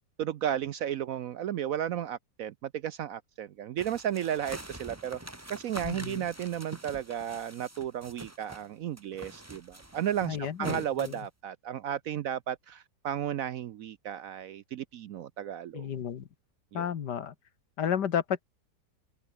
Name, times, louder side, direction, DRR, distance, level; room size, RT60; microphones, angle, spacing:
voice 1, 0.2-5.2 5.5-15.9 16.7-16.9, right 10 dB, 65° right, 0.9 m, -34 dB
sound 1, 3.8-8.7 9.0-11.3, right 1 dB, 10° right, 1.8 m, -45 dB
voice 2, 5.8-6.2 10.2-11.1 15.7-16.2 16.7-17.3 17.8-18.4, left 8 dB, 75° left, 1.9 m, -32 dB
omnidirectional pair, 1.9 m